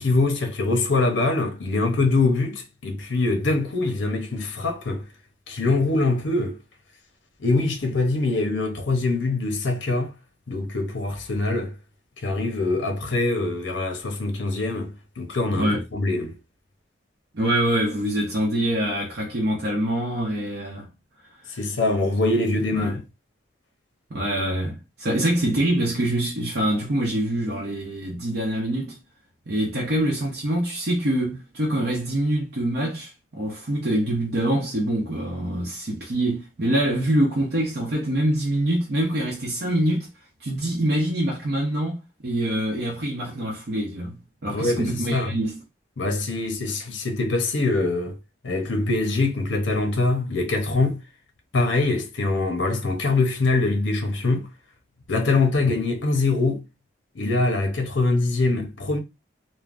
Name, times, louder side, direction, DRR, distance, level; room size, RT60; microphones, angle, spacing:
voice 1, 0.0-5.0 5.5-6.6 7.4-10.1 10.5-11.7 12.2-16.4 21.6-23.0 44.5-45.3 46.0-48.2 48.4-51.0 51.5-54.5 55.1-56.6 57.2-59.0, left 3 dB, 70° left, 0.6 m, -23 dB
voice 2, 17.3-20.9 21.3-21.5 22.7-23.0 24.1-29.0 29.5-40.1 40.4-45.6, right 1 dB, 55° right, 0.7 m, -25 dB
3.3 x 2.0 x 2.4 m
head